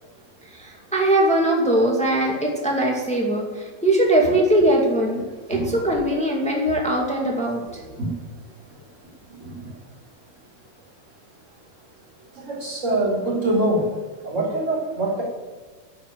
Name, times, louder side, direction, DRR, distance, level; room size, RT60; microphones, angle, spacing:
voice 1, 0.4-8.0, right 1 dB, 5° left, -1 dB, 0.7 m, -21 dB
voice 2, 12.5-13.9 14.2-15.2, right 2 dB, 20° right, -5 dB, 4.4 m, -23 dB
10.5 x 7.4 x 9.2 m, 1.4 s
omnidirectional pair, 4.5 m